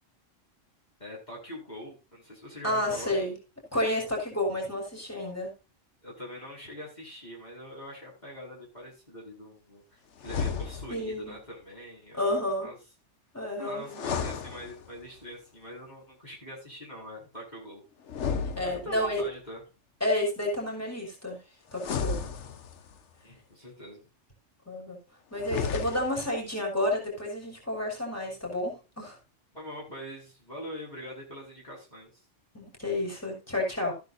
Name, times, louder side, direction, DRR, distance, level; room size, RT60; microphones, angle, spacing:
voice 1, 1.0-3.1 6.0-12.8 13.6-17.8 18.6-19.6 23.2-24.1 29.5-32.2, equal, 35° left, -3 dB, 5.2 m, -43 dB
voice 2, 2.6-3.3 3.7-5.5 10.9-11.4 12.1-12.7 13.3-14.0 18.6-19.2 20.0-21.4 21.7-22.2 24.7-25.0 25.3-29.2 32.5-33.9, left 1 dB, 10° left, -1 dB, 5.5 m, -30 dB
sound 1, 10.2-11.1 13.8-15.2 18.1-19.2 21.7-23.0 25.3-26.3, left 6 dB, 65° left, 1.2 m, -33 dB
15.0 x 10.5 x 2.6 m, 0.29 s
omnidirectional pair, 1.3 m